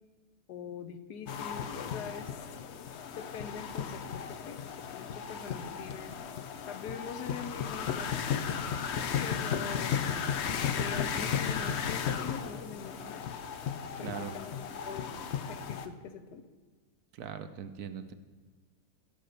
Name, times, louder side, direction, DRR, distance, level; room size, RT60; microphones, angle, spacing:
voice 1, 0.5-2.3 3.2-4.0 4.3-4.7 4.9-6.2 6.7-8.8 9.1-10.0 10.8-13.2 14.0-14.6 14.9-15.1 15.5-16.4, left 6 dB, 80° left, 9 dB, 1.4 m, -43 dB
sound 1, 1.3-15.9, left 7 dB, 60° left, 0.7 m, -35 dB
voice 2, 14.0-14.3 17.1-18.1, right 8 dB, 70° right, 9 dB, 1.2 m, -40 dB
14.0 x 5.6 x 6.7 m, 1.4 s
omnidirectional pair, 1.7 m